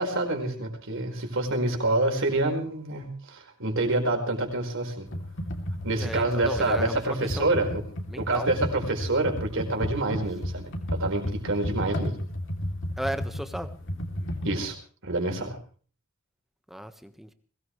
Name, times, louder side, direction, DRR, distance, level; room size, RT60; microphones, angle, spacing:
voice 1, 0.0-5.1 5.8-7.8 8.1-12.2 14.4-14.7 15.0-15.6, right 2 dB, 60° right, 3 dB, 4.9 m, -27 dB
Computer keyboard, 5.1-14.6, equal, 60° left, 3.1 m, -33 dB
voice 2, 5.9-7.6 8.1-8.5 13.0-13.7 16.7-17.3, equal, ahead, 9 dB, 1.4 m, -35 dB
22.0 x 18.5 x 3.3 m, 0.42 s
head